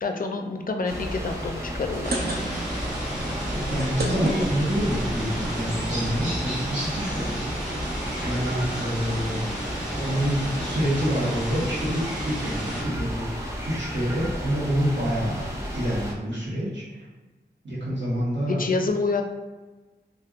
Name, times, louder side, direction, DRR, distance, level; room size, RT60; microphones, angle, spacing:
voice 1, 0.0-2.2 18.5-19.2, left 3 dB, 50° left, 4 dB, 0.4 m, -27 dB
sound 1, 0.9-16.1, equal, 15° right, 0.6 m, -33 dB
sound 2, 1.7-2.8 3.1-3.2 3.5-5.0 5.7-5.8 6.1-6.2 6.3-6.6, right 2 dB, 55° right, 0.6 m, -31 dB
sound 3, 2.0-12.8, right 1 dB, 40° right, 1.5 m, -33 dB
voice 2, 3.5-7.4 8.2-9.4 9.9-15.5 15.7-16.8 17.6-18.6, equal, 80° right, -9 dB, 1.3 m, -27 dB
3.2 x 2.4 x 2.4 m, 1.2 s
wide cardioid pair, 50°, 19 cm